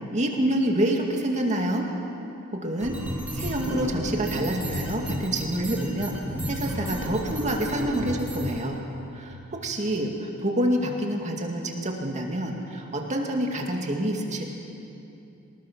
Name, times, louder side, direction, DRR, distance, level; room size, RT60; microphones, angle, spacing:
voice 1, 0.1-1.9 2.5-3.0 3.3-6.2 6.5-8.8 9.1-14.5, right 1 dB, 35° right, 1 dB, 2.2 m, -27 dB
sound 1, 2.8-8.6, equal, 5° right, 2.7 m, -32 dB
26.0 x 20.0 x 6.2 m, 2.7 s
head